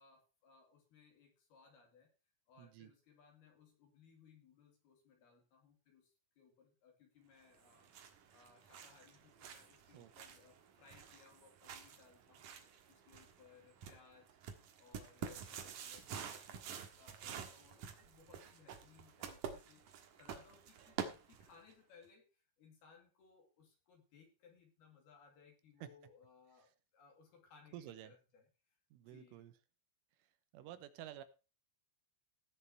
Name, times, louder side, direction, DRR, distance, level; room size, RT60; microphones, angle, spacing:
voice 1, 0.0-2.1 2.5-14.5 14.8-29.5 30.6-30.8, left 5 dB, 55° left, 2 dB, 4.0 m, -65 dB
voice 2, 2.6-2.9 9.9-10.1 25.8-25.9 27.7-28.1 28.9-29.5 30.5-31.2, right 12 dB, 80° right, 11 dB, 3.5 m, -51 dB
sound 1, 7.5-21.7, right 7 dB, 65° right, 2.1 m, -49 dB
17.5 x 6.6 x 4.4 m, 0.32 s
omnidirectional pair, 5.8 m